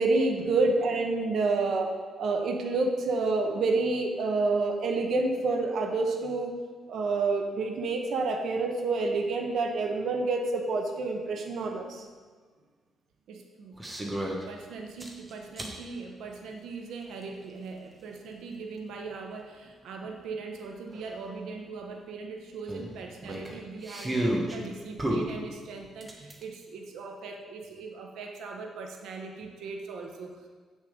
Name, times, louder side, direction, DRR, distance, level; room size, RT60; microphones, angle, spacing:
voice 1, 0.0-1.9 2.2-6.5 6.9-12.0, right 3 dB, 60° right, 3 dB, 1.0 m, -27 dB
voice 2, 13.3-13.8 14.1-30.5, right 4 dB, 90° right, 2 dB, 1.0 m, -41 dB
sound 1, 13.8-14.4 15.0-15.8 17.2-17.3 20.0-20.1 20.3-20.4 20.9-21.1 22.7-24.6 25.0-26.4, right 1 dB, 15° right, 1.1 m, -31 dB
8.4 x 6.5 x 5.1 m, 1.5 s
cardioid pair, 150°, 0 cm